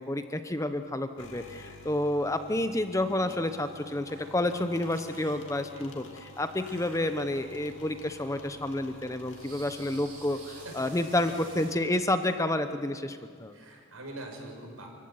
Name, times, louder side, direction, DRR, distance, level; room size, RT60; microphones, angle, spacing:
voice 1, 0.0-13.6, left 1 dB, 15° left, 9 dB, 0.8 m, -30 dB
sound 1, 1.2-12.5, left 2 dB, 60° left, 2.7 m, -50 dB
sound 2, 3.1-3.2 4.1-4.4 4.7-5.5 6.6-7.8 8.2-8.3 9.2-11.8, right 3 dB, 40° right, 5.4 m, -51 dB
voice 2, 11.1-11.4 11.9-12.0 13.5-14.9, right 2 dB, 80° right, 2 dB, 6.1 m, -44 dB
27.0 x 15.5 x 9.6 m, 2.1 s
head